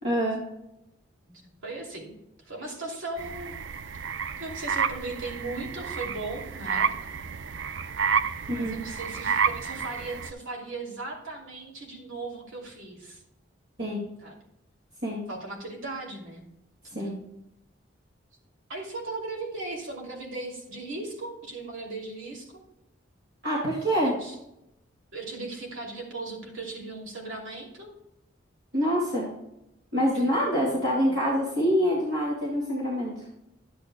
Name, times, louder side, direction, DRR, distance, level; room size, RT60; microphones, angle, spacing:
voice 1, 0.0-0.4 8.5-8.7 13.8-14.0 15.0-15.2 16.9-17.1 23.4-24.1 28.7-29.3 29.9-33.1, equal, 55° right, -4 dB, 2.0 m, -25 dB
voice 2, 1.3-2.2 2.4-3.5 4.4-6.9 8.4-13.2 14.2-14.3 15.3-16.4 16.8-17.2 18.7-22.6 24.0-24.4 25.1-27.9 30.1-30.4, right 2 dB, 90° right, -1 dB, 2.7 m, -37 dB
sound 1, 3.2-10.3, right 6 dB, 75° right, 0.5 m, -30 dB
11.0 x 8.4 x 2.2 m, 0.84 s
head